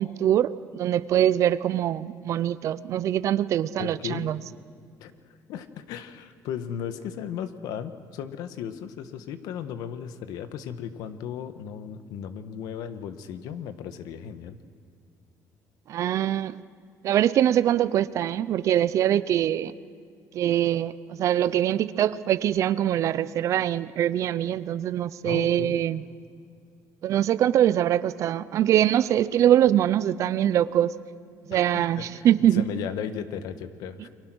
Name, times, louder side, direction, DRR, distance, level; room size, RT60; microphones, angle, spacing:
voice 1, 0.0-4.4 15.9-16.6 17.0-19.7 20.3-26.0 27.0-31.0 31.5-32.6, right 11 dB, 55° right, 17 dB, 0.7 m, -23 dB
voice 2, 3.8-4.3 5.0-14.6 25.2-25.8 31.5-34.1, left 8 dB, 75° left, 11 dB, 1.5 m, -36 dB
29.5 x 23.0 x 6.3 m, 2.2 s
cardioid pair, 145°, 7 cm